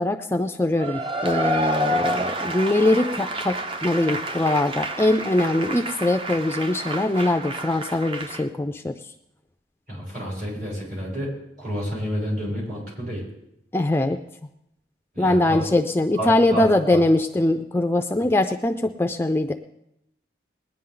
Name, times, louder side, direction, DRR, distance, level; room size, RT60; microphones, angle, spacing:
voice 1, 0.0-8.9 13.7-14.2 15.2-19.5, left 1 dB, 10° left, 5 dB, 0.4 m, -22 dB
Cheering / Applause / Crowd, 0.8-8.4, right 1 dB, 30° right, 0.7 m, -29 dB
voice 2, 9.9-11.3 11.6-13.2 15.1-15.6 16.2-16.6 16.9-17.0, equal, 50° right, -5 dB, 6.8 m, -29 dB
20.5 x 10.0 x 3.8 m, 0.81 s
head